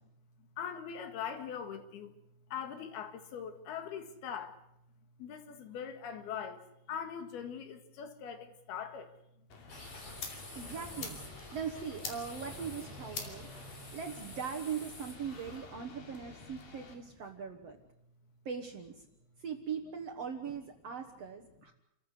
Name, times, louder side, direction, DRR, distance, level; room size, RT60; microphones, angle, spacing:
voice 1, 0.6-2.2 2.5-4.6 5.2-6.6 6.9-9.1, left 8 dB, 80° left, 3.8 m, -41 dB
sound 1, 9.5-17.0, left 5 dB, 65° left, 4.3 m, -48 dB
sound 2, 9.7-15.6, left 2 dB, 35° left, 5.3 m, -49 dB
sound 3, 9.8-17.3, equal, ahead, 7.5 m, -55 dB
voice 2, 10.6-11.2 11.5-17.8 18.5-19.0 19.4-21.7, right 7 dB, 60° right, 1.8 m, -40 dB
29.5 x 14.5 x 8.2 m
omnidirectional pair, 4.4 m